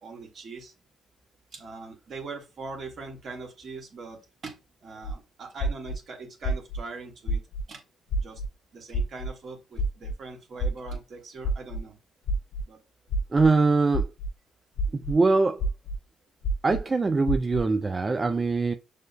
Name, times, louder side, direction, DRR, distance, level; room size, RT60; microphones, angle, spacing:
voice 1, 0.0-0.7 1.5-7.4 7.7-7.8 8.2-8.4 8.7-12.0 12.7-12.8, right 3 dB, 55° right, 1.4 m, -41 dB
sound 1, 5.0-5.1 5.6-6.0 6.4-6.8 7.3-7.6 8.1-8.5 8.9-9.3 9.8-10.1 10.6-11.0 11.4-11.8 12.3-12.6 13.1-13.5 13.9-14.3 14.8-15.1 15.6-16.0 16.4-16.8 17.3-17.6, right 1 dB, 65° left, 0.4 m, -27 dB
voice 2, 13.3-14.1 14.9-15.6 16.6-18.7, right 3 dB, 30° right, 0.3 m, -23 dB
6.5 x 2.5 x 2.2 m
hypercardioid pair, 50°, 0 cm